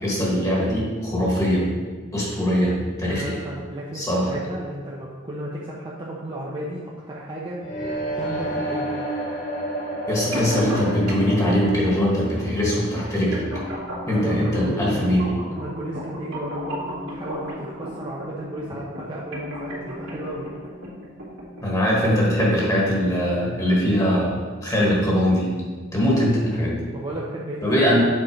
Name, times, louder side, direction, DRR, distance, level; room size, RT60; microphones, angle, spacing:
voice 1, 0.0-1.6 2.1-3.4 3.9-4.3 10.1-13.4 14.1-15.3 21.6-25.5 25.9-26.9 27.6-28.0, equal, 15° left, -4 dB, 1.4 m, -21 dB
voice 2, 3.1-9.0 14.0-15.2 15.4-20.5 26.9-27.9, right 1 dB, 25° right, -5 dB, 0.8 m, -34 dB
sound 1, 7.6-13.5, right 1 dB, 40° left, 1.8 m, -30 dB
sound 2, 10.3-22.3, equal, 75° right, 2.0 m, -35 dB
7.7 x 4.4 x 4.5 m, 1.5 s
head